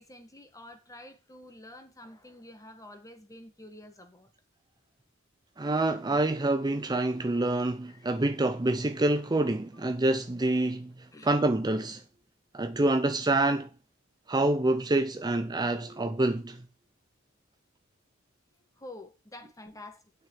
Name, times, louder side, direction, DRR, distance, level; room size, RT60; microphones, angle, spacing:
voice 1, 0.0-4.3 7.9-8.2 11.1-11.3 18.8-20.0, left 1 dB, 15° left, 1.9 m, -48 dB
voice 2, 5.6-12.0 12.5-13.7 14.3-16.6, right 2 dB, 20° right, 0.6 m, -27 dB
9.3 x 6.3 x 6.4 m
head